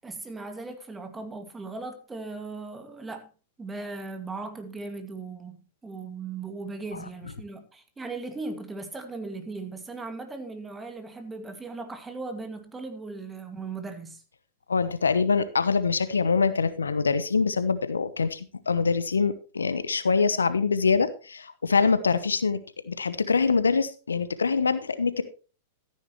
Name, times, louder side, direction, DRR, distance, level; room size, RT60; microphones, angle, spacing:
voice 1, 0.0-3.3 3.6-14.2, right 3 dB, 15° right, 2.1 m, -38 dB
voice 2, 14.7-25.2, left 5 dB, 85° left, 0.9 m, -24 dB
14.0 x 9.8 x 3.1 m
hypercardioid pair, 100°, 0 cm